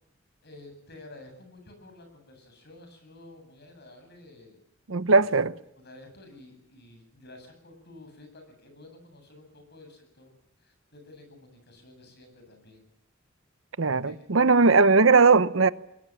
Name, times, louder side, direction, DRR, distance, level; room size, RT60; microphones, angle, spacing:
voice 1, 0.4-4.6 5.0-5.3 5.8-12.8 14.0-14.2 14.6-14.8, left 2 dB, 55° left, 8.0 m, -51 dB
voice 2, 4.9-5.5 13.8-15.7, right 4 dB, 80° right, 0.9 m, -19 dB
22.0 x 20.5 x 7.5 m
head